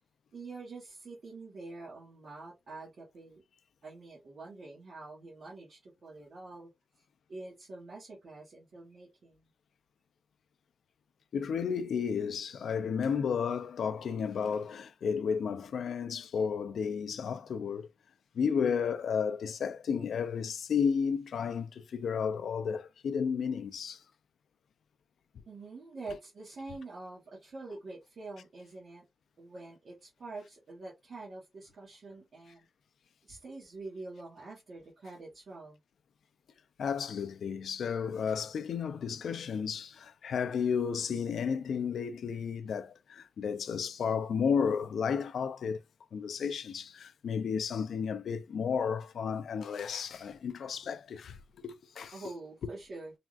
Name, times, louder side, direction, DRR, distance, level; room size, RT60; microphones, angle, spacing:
voice 1, 0.3-3.4 3.8-6.7 7.3-9.5 25.5-29.0 29.4-32.7 33.2-35.8 50.3-50.4 52.1-53.1, right 3 dB, 50° right, 1.1 m, -46 dB
voice 2, 11.3-17.9 18.3-24.0 36.8-45.8 46.1-52.1, left 6 dB, 75° left, 0.3 m, -32 dB
3.4 x 2.3 x 2.3 m
wide cardioid pair, 180°, 0 cm